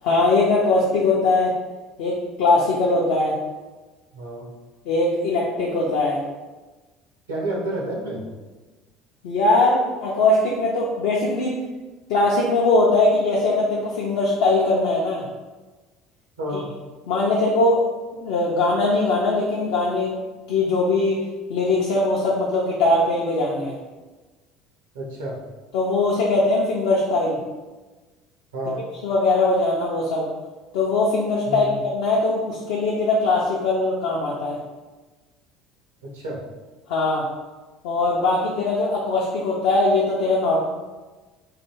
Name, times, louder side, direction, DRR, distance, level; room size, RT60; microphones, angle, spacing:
voice 1, 0.0-1.5 2.0-3.3 4.9-6.2 9.2-11.5 12.1-15.3 17.1-17.8 18.1-20.1 20.5-21.2 21.5-23.7 25.7-27.4 29.0-30.3 30.7-34.6 36.9-37.3 37.8-40.6, left 2 dB, 65° left, -4 dB, 0.5 m, -21 dB
voice 2, 4.1-4.5 7.3-8.3 16.4-16.7 24.9-25.4 28.5-28.8 31.5-31.7 36.0-36.4, right 1 dB, 80° right, -3 dB, 0.8 m, -30 dB
3.2 x 2.3 x 3.0 m, 1.2 s
figure-of-eight pair, 65°, 0 cm